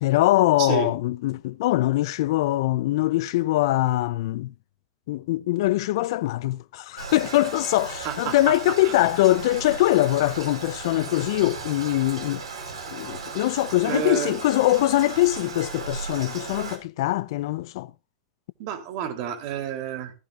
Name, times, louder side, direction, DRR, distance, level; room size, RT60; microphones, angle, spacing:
voice 1, 0.0-4.5 5.1-12.4 12.9-17.9, left 16 dB, 65° left, 0.5 m, -23 dB
voice 2, 0.6-0.9 8.0-8.5 8.8-9.0 13.8-14.4 18.6-20.1, right 9 dB, 55° right, 3.3 m, -30 dB
Toilet flush, 7.0-16.8, right 4 dB, 85° right, 4.3 m, -36 dB
14.5 x 14.5 x 2.5 m
hypercardioid pair, 105°, 3 cm